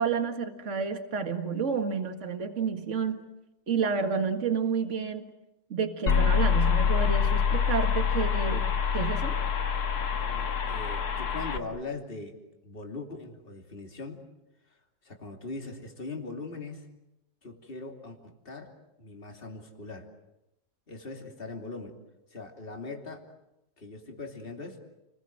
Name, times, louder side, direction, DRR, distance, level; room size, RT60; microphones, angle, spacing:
voice 1, 0.0-3.2 3.7-5.3 5.7-8.7 8.9-9.4, right 6 dB, 50° right, 6 dB, 2.2 m, -30 dB
sound 1, 6.1-11.6, left 7 dB, 85° left, 1.9 m, -26 dB
voice 2, 10.2-12.4 12.6-14.2 14.7-16.9 17.4-18.2 18.4-20.1 20.9-21.9 22.3-23.2 23.8-24.8, left 3 dB, 35° left, 2 dB, 3.1 m, -40 dB
30.0 x 22.0 x 7.8 m, 0.92 s
omnidirectional pair, 1.6 m